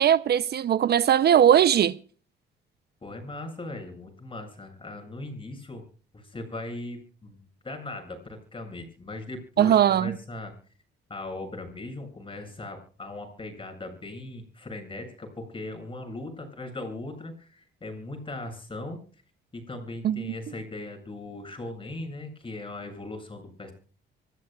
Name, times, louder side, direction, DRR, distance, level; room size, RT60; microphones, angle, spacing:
voice 1, 0.0-1.9 9.6-10.1 20.0-20.3, right 10 dB, 55° right, 0.6 m, -20 dB
voice 2, 3.0-5.8 6.1-10.5 11.1-19.0 19.5-23.7, left 2 dB, 25° left, 7.8 m, -39 dB
25.5 x 14.5 x 2.3 m
cardioid pair, 90°, 20 cm